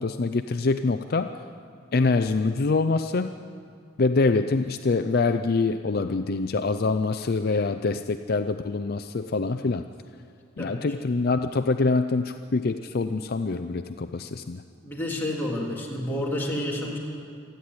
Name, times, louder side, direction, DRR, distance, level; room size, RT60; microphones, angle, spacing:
voice 1, 0.0-1.4 1.9-3.4 4.0-9.8 10.6-14.6, left 3 dB, 50° left, 9 dB, 0.5 m, -25 dB
voice 2, 10.6-10.9 14.8-17.0, left 1 dB, 10° left, -4 dB, 3.3 m, -30 dB
27.0 x 10.5 x 9.7 m, 2.4 s
head